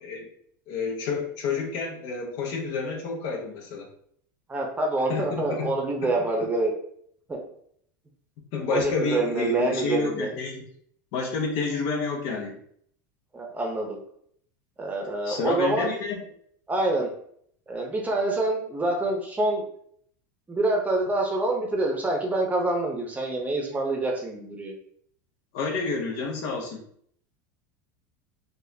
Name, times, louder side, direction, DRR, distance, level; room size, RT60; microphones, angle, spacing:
voice 1, 0.7-3.9 5.1-5.7 6.0-6.1 8.5-10.7 11.1-12.6 15.2-16.2 25.5-26.8, left 4 dB, 60° left, 1 dB, 1.0 m, -29 dB
voice 2, 4.5-6.7 7.3-7.4 8.7-10.3 13.3-14.0 14.8-15.9 16.7-17.1 17.7-19.7 20.5-24.7, right 2 dB, 15° right, 0 dB, 0.8 m, -26 dB
4.0 x 2.5 x 2.7 m, 0.65 s
supercardioid pair, 115°, 10 cm